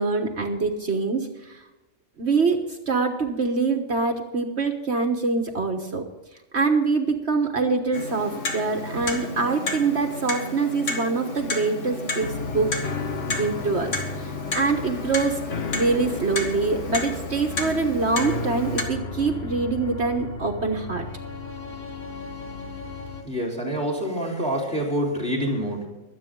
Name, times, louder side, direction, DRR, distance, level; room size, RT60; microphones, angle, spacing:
voice 1, 0.0-1.6 2.2-6.0 6.5-12.7 13.3-15.4 15.7-21.0, right 4 dB, 60° right, 4 dB, 1.6 m, -24 dB
Clock, 7.9-18.8, left 2 dB, 80° left, 2.1 m, -32 dB
sound 1, 12.2-23.2, left 4 dB, 55° left, 1.6 m, -34 dB
voice 2, 23.2-25.9, equal, 5° left, -1 dB, 3.8 m, -26 dB
23.0 x 8.9 x 3.8 m, 1.0 s
omnidirectional pair, 1.3 m